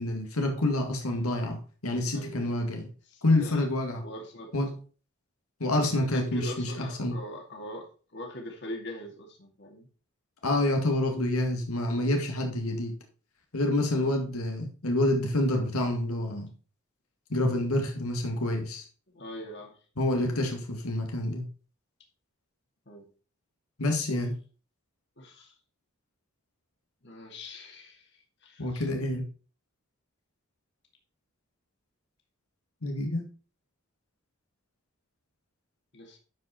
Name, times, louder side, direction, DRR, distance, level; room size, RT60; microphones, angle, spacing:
voice 1, 0.0-2.9 3.2-4.0 4.5-4.8 5.6-7.1 10.4-12.9 13.5-16.5 17.3-18.8 20.0-21.5 23.8-24.3 28.6-29.3 32.8-33.3, left 1 dB, 90° left, 3 dB, 2.1 m, -28 dB
voice 2, 2.1-2.6 3.1-3.7 4.0-4.5 5.6-9.9 13.9-14.1 19.1-19.8 22.9-23.1 25.2-25.5 27.0-28.9 35.9-36.2, equal, 55° left, 2 dB, 2.2 m, -42 dB
11.5 x 5.2 x 4.3 m, 0.38 s
head